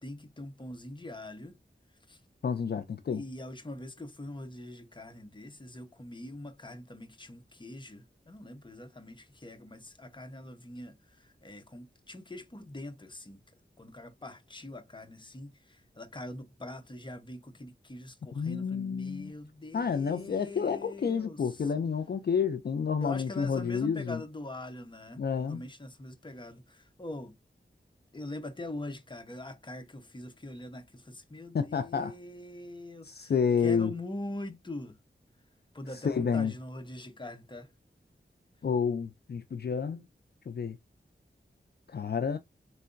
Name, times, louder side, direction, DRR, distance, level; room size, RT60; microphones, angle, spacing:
voice 1, 0.0-1.6 2.1-2.2 3.1-13.4 13.8-21.4 23.0-27.4 28.1-33.3 33.6-35.0 35.7-37.7, left 1 dB, 25° left, 0.7 m, -43 dB
voice 2, 2.4-3.2 18.3-19.3 19.7-24.2 25.2-25.6 31.5-32.1 33.0-33.9 36.0-36.5 38.6-40.1 40.5-40.8 41.9-42.4, left 6 dB, 55° left, 0.4 m, -29 dB
3.8 x 3.2 x 2.5 m
wide cardioid pair, 70°, 20 cm